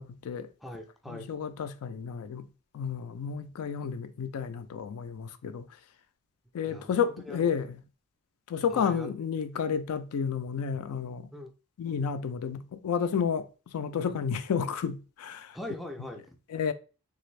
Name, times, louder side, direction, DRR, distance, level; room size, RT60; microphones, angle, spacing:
voice 1, 0.0-0.5 1.1-2.5 2.7-5.7 6.5-7.8 8.5-11.3 11.8-15.6 16.5-16.7, left 7 dB, 80° left, 0.4 m, -31 dB
voice 2, 0.6-1.3 6.6-7.5 8.7-9.2 11.3-11.5 14.0-14.2 15.5-16.4, left 1 dB, ahead, 0.4 m, -41 dB
3.3 x 2.5 x 3.1 m
head